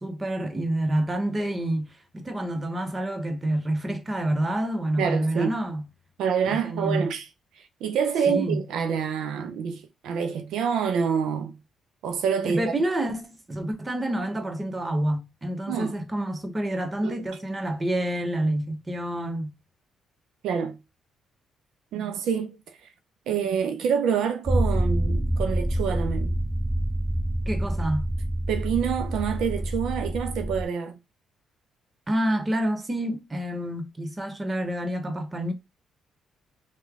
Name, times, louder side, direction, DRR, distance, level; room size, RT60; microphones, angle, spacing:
voice 1, 0.0-5.9 6.5-7.1 8.3-8.6 12.4-19.5 27.5-28.1 32.1-35.5, right 1 dB, 20° right, 0.9 m, -28 dB
voice 2, 5.0-5.6 6.2-7.3 7.8-11.6 12.0-12.7 15.7-16.0 17.0-17.2 20.4-20.8 21.9-22.6 23.3-26.3 28.5-31.0, right 7 dB, 80° right, 0.6 m, -27 dB
sound 1, 24.5-30.6, right 1 dB, 5° right, 0.5 m, -27 dB
3.1 x 2.2 x 3.5 m
cardioid pair, 90°, 0 cm